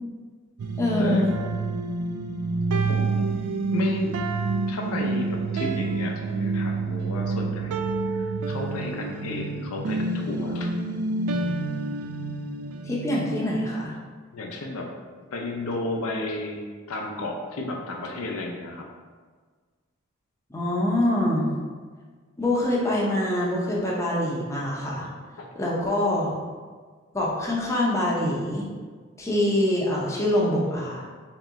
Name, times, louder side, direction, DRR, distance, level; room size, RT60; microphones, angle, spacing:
sound 1, 0.6-13.5, right 3 dB, 90° right, 0.3 m, -28 dB
voice 1, 0.8-1.4 12.8-13.9 20.5-21.5 22.4-25.1 25.6-26.3 27.1-28.6 29.2-31.0, left 1 dB, 15° left, -5 dB, 0.5 m, -24 dB
voice 2, 2.9-3.3 3.7-4.2 4.6-10.7 14.3-14.9 15.3-18.9 25.4-25.5, left 2 dB, 80° left, 1 dB, 0.5 m, -33 dB
3.1 x 2.9 x 3.5 m, 1.5 s
head